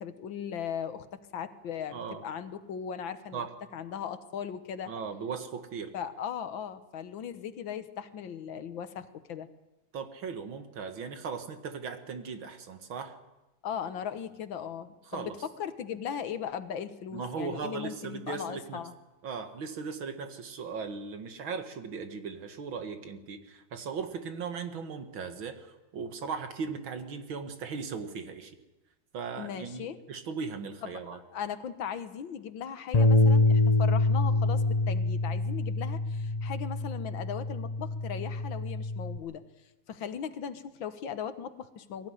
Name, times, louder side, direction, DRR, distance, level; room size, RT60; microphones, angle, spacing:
voice 1, 0.0-3.5 3.7-4.9 5.9-9.5 13.6-18.9 29.4-30.0 30.8-39.4 39.9-42.1, left 8 dB, 70° left, 11 dB, 1.8 m, -38 dB
voice 2, 1.9-2.2 3.3-3.5 4.9-5.9 9.9-13.2 15.1-15.4 17.1-18.8 19.2-28.5 29.1-31.2, right 5 dB, 75° right, 7 dB, 2.4 m, -38 dB
Bass guitar, 32.9-39.2, left 2 dB, 35° left, 0.6 m, -26 dB
22.5 x 15.5 x 9.9 m, 1.1 s
omnidirectional pair, 2.2 m